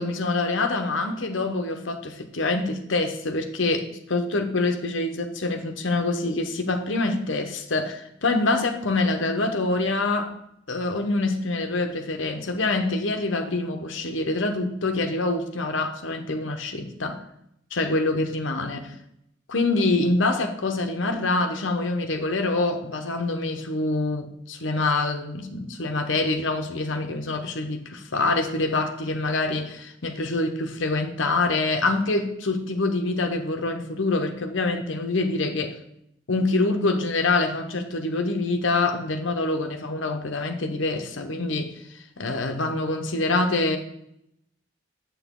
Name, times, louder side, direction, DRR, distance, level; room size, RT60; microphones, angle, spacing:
voice 1, 0.0-10.3 10.7-17.2 17.7-18.9 19.5-35.8 36.3-41.7 42.2-43.8, left 2 dB, 85° left, 5 dB, 1.0 m, -25 dB
8.3 x 7.7 x 3.8 m, 0.77 s
head